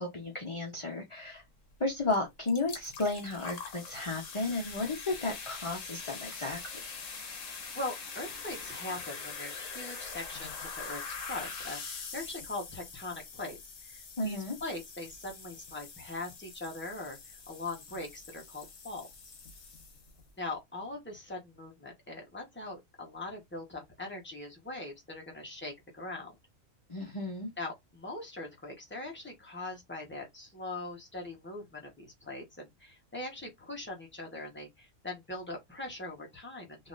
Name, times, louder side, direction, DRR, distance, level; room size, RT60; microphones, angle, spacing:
voice 1, 0.0-1.4 1.8-6.9 14.2-14.6 26.9-27.5, left 2 dB, 25° left, 0.8 m, -33 dB
sound 1, 2.1-2.2 2.5-20.2, left 5 dB, 70° left, 1.4 m, -44 dB
voice 2, 7.7-13.6 13.8-19.3 20.4-26.3 27.6-36.9, left 2 dB, 10° left, 1.0 m, -41 dB
3.9 x 2.8 x 2.5 m
omnidirectional pair, 1.4 m